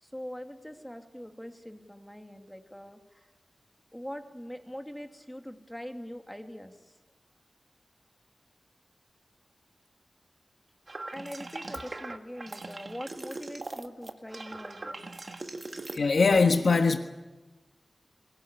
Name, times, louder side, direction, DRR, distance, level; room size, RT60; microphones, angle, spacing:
voice 1, 0.0-3.3 3.9-7.0 11.1-15.0, equal, 5° left, 5 dB, 2.6 m, -42 dB
sound 1, 10.9-16.0, right 2 dB, 50° right, 1.8 m, -40 dB
voice 2, 15.9-17.0, left 4 dB, 75° left, 6 dB, 1.3 m, -22 dB
23.0 x 18.0 x 9.7 m, 1.2 s
cardioid pair, 55°, 0 cm